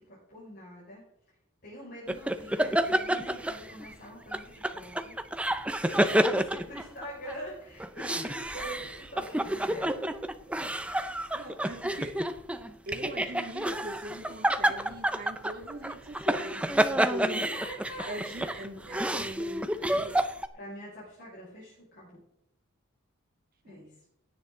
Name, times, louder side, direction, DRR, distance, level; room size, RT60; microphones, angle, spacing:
voice 1, 0.1-1.0 1.6-5.2 5.8-10.0 10.5-10.9 17.3-18.5 20.5-22.2 23.6-24.0, equal, 50° left, -7 dB, 5.9 m, -44 dB
sound 1, 2.1-3.9 4.3-7.4 7.8-20.5, right 1 dB, 5° right, 0.6 m, -29 dB
voice 2, 11.3-12.2 12.9-17.5 18.0-20.2 23.6-24.0, right 1 dB, 45° right, 2 dB, 2.5 m, -41 dB
17.0 x 9.7 x 3.9 m, 0.78 s
head